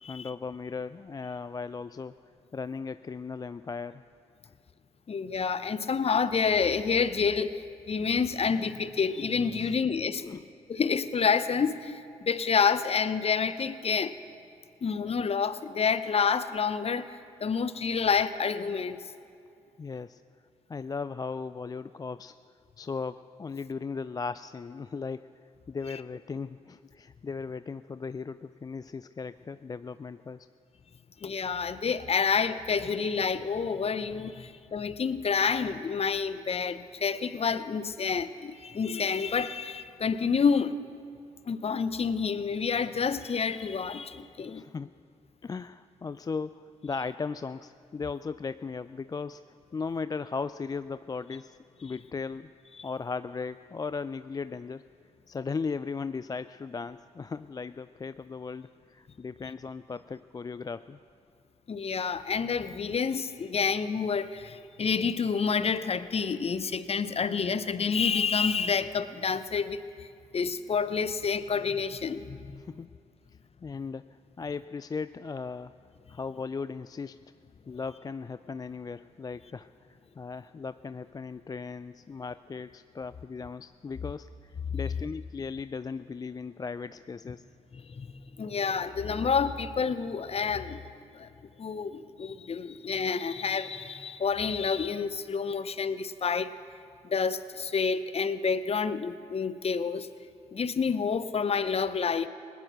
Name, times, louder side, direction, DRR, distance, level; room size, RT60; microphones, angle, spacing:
voice 1, 0.1-4.0 9.6-9.8 10.2-10.4 19.8-20.2 20.7-22.4 22.8-25.3 25.7-30.5 34.4-34.5 44.4-44.9 45.4-49.4 49.7-52.6 52.8-54.8 55.3-61.0 72.6-72.9 73.6-75.7 76.1-77.2 77.7-87.4, left 5 dB, 25° left, 13 dB, 0.3 m, -37 dB
voice 2, 5.1-10.2 10.7-14.1 14.8-17.1 17.4-19.0 31.2-40.8 41.5-44.6 52.8-52.9 61.7-70.1 70.3-72.6 87.7-90.8 91.1-91.3 91.6-96.5 97.0-100.1 100.5-102.3, left 6 dB, 40° left, 14 dB, 0.7 m, -28 dB
18.5 x 10.0 x 6.0 m, 2.4 s
hypercardioid pair, 40°, 15 cm